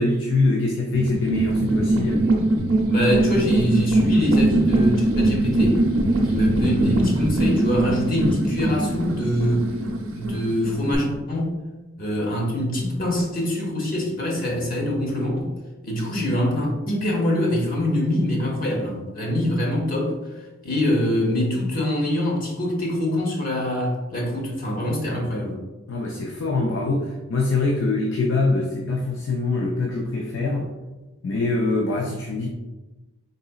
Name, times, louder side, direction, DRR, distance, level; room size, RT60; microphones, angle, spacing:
voice 1, 0.0-2.2 25.9-30.7 31.2-32.5, left 3 dB, 60° left, 1 dB, 0.4 m, -24 dB
sound 1, 0.9-10.9, right 2 dB, 75° right, 0.6 m, -21 dB
voice 2, 2.9-5.8 6.2-9.7 10.1-11.5 12.0-15.5 15.8-20.1 20.6-25.6, left 1 dB, 45° left, -1 dB, 0.9 m, -24 dB
4.0 x 3.7 x 2.3 m, 1.1 s
head